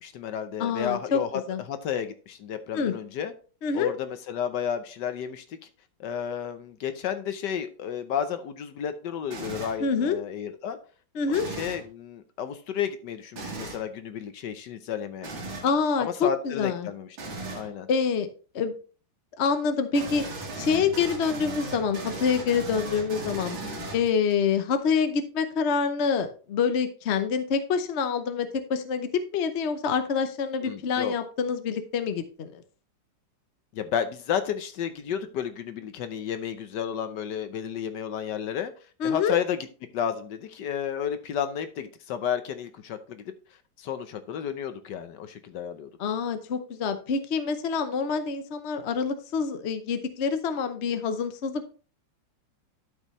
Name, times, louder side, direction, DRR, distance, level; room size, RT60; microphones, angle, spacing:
voice 1, 0.0-1.4 1.7-3.3 3.7-5.6 6.0-10.8 11.4-15.3 16.0-17.1 17.5-17.9 23.6-23.9 30.6-31.1 33.7-38.7 39.0-39.7 39.9-43.3 43.8-45.9, left 8 dB, 70° left, 1.3 m, -32 dB
voice 2, 0.6-1.2 1.5-1.6 2.7-2.9 3.6-3.9 9.8-10.2 11.1-11.5 15.6-16.9 17.9-18.3 18.5-18.7 19.4-20.3 20.5-23.6 23.9-32.5 39.0-39.4 46.0-51.7, left 6 dB, 50° left, 0.9 m, -26 dB
sound 1, 9.3-9.8 11.3-11.9 13.3-13.8 15.2-15.7 17.2-17.7 19.9-24.3, right 2 dB, 80° right, 2.7 m, -37 dB
12.0 x 5.6 x 3.1 m
omnidirectional pair, 2.1 m